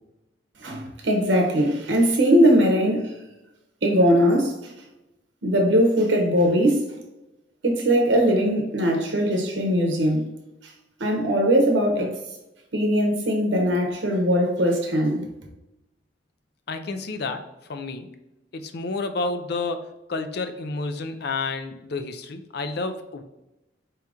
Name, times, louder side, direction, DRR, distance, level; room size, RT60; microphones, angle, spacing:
voice 1, 0.6-3.2 3.8-4.7 5.4-7.0 7.6-10.3 11.0-12.1 12.7-15.3, equal, 85° right, 0.9 m, -20 dB
voice 2, 16.7-17.4 17.7-18.1 18.5-23.2, left 3 dB, 60° left, 0.5 m, -30 dB
4.9 x 2.9 x 3.5 m
head